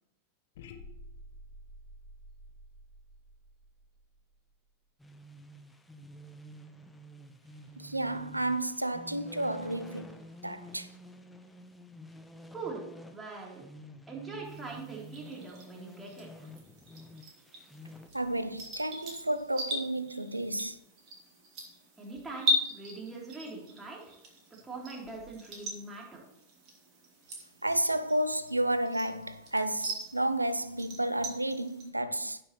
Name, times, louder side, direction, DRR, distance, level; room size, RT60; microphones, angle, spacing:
sound 1, 0.5-4.7, left 1 dB, 55° left, 1.1 m, -50 dB
sound 2, 5.0-18.1, equal, 5° left, 0.9 m, -50 dB
voice 1, 7.8-10.9 18.1-20.8 27.6-32.4, right 1 dB, 85° right, 0.6 m, -31 dB
voice 2, 12.5-12.8 13.1-13.6 14.1-16.5 22.0-24.0 24.6-26.2, right 3 dB, 10° right, 3.5 m, -42 dB
sound 3, 14.4-31.9, left 1 dB, 40° right, 2.8 m, -40 dB
16.5 x 6.0 x 3.2 m
figure-of-eight pair, 90°, 0 cm